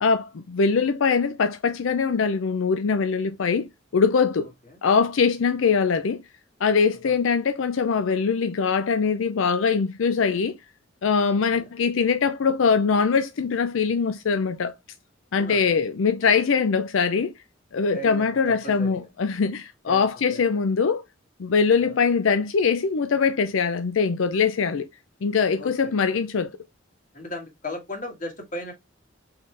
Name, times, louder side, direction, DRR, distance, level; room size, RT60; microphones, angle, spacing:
voice 1, 0.0-4.5 4.8-6.2 6.6-10.5 11.0-14.7 15.3-17.3 17.7-21.0 21.4-24.9 25.2-26.5, left 5 dB, 85° left, 0.5 m, -22 dB
voice 2, 15.3-15.6 17.9-19.1 19.9-20.0 20.3-20.6 21.8-22.0 25.6-25.9 27.1-28.7, left 1 dB, 40° left, 1.7 m, -37 dB
4.1 x 3.9 x 3.2 m
head